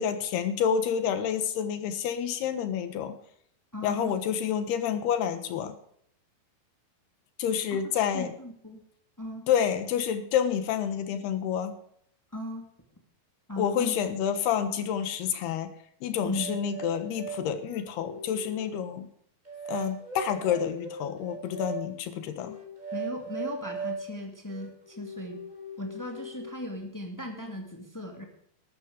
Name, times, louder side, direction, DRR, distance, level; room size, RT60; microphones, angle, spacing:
voice 1, 0.0-3.1 3.8-5.7 7.4-8.3 9.5-11.7 13.6-15.7 16.0-19.1 19.7-22.6, left 8 dB, 75° left, 10 dB, 3.2 m, -28 dB
voice 2, 3.7-4.1 7.7-7.8 8.1-8.8 9.2-9.4 12.3-12.6 13.5-13.9 16.2-16.6 22.9-25.4 25.8-28.2, left 1 dB, 20° left, 2 dB, 0.5 m, -37 dB
sound 1, 16.3-18.8 19.5-21.9 22.3-24.0 24.5-26.5, right 3 dB, 10° right, 3.9 m, -39 dB
13.5 x 12.5 x 5.1 m, 0.68 s
omnidirectional pair, 4.8 m